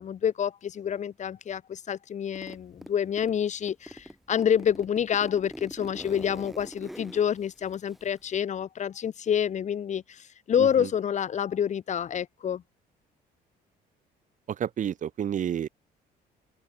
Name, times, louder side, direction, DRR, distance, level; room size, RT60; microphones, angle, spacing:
voice 1, 0.0-12.6, left 8 dB, 45° left, 1.5 m, -28 dB
Zipper (clothing), 2.3-3.4 3.7-8.4, equal, ahead, 2.7 m, -43 dB
voice 2, 10.6-10.9 14.5-15.7, right 9 dB, 50° right, 1.8 m, -30 dB
open air
cardioid pair, 110°, 17 cm